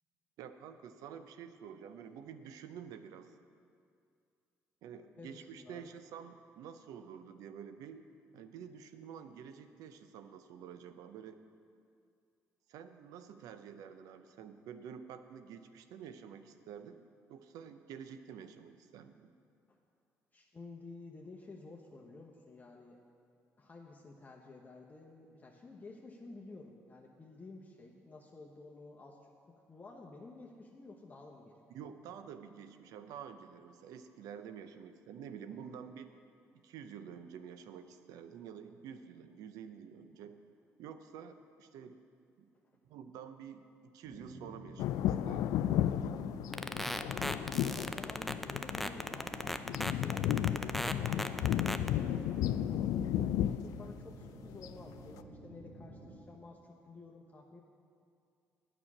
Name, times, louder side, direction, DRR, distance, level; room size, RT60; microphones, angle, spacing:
voice 1, 0.4-3.3 4.8-8.1 8.3-11.4 12.7-17.0 17.3-19.3 31.7-36.1 36.6-40.3 40.8-42.0 42.4-42.5 42.8-45.6 53.6-53.7, right 8 dB, 80° right, 9 dB, 0.6 m, -49 dB
voice 2, 5.2-5.9 19.7-19.8 20.3-23.0 23.6-29.3 29.7-31.6 35.5-35.8 46.5-53.0 53.4-57.6, left 3 dB, 30° left, -2 dB, 1.1 m, -52 dB
sound 1, 44.0-56.2, right 1 dB, 25° right, 2.5 m, -51 dB
sound 2, 44.8-54.7 55.1-55.2, left 11 dB, 80° left, 0.3 m, -34 dB
sound 3, 46.5-51.9, equal, ahead, 0.5 m, -36 dB
9.0 x 6.3 x 8.5 m, 2.4 s
supercardioid pair, 70°, 6 cm